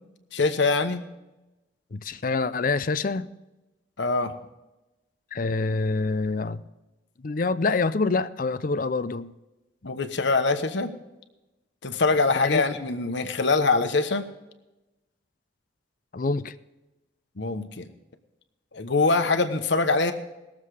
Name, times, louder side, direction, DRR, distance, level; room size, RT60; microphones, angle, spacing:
voice 1, 0.3-1.0 4.0-4.3 9.8-10.9 11.8-14.3 17.4-17.9 18.7-20.1, left 3 dB, 70° left, 1.1 m, -23 dB
voice 2, 1.9-3.3 5.3-6.6 7.2-9.3 12.4-12.7 16.1-16.5, left 3 dB, 45° left, 0.5 m, -26 dB
19.5 x 7.3 x 4.9 m
head